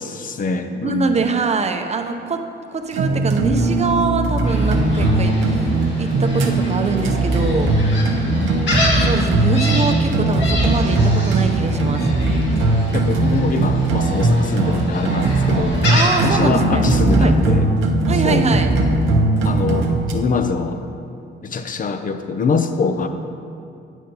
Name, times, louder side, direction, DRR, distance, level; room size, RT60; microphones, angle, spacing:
voice 1, 0.0-1.3 8.3-8.6 12.9-15.7 16.2-17.7 18.2-18.4 19.4-20.8 21.4-23.1, left 4 dB, 45° left, 8 dB, 0.7 m, -23 dB
voice 2, 0.8-5.7 6.0-7.7 8.5-8.7 9.0-12.1 15.9-16.8 17.2-17.3 18.1-18.7, right 4 dB, 35° right, 6 dB, 0.7 m, -23 dB
sound 1, 2.9-20.1, right 2 dB, 85° right, 0.8 m, -19 dB
Gull seagull, 4.5-16.1, left 2 dB, 70° left, 1.9 m, -28 dB
9.2 x 9.1 x 2.9 m, 2.5 s
cardioid pair, 90°, 20 cm